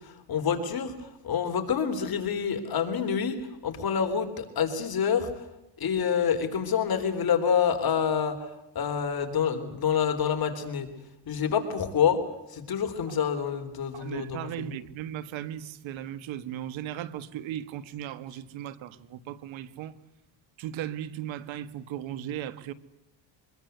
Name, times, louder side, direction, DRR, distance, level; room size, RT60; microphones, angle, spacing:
voice 1, 0.0-5.4 5.8-10.9 11.3-12.2 12.5-14.7, left 7 dB, 50° left, 3.8 m, -27 dB
voice 2, 13.9-20.0 20.6-22.7, right 11 dB, 85° right, 1.7 m, -37 dB
24.5 x 22.5 x 8.0 m
cardioid pair, 105°, 46 cm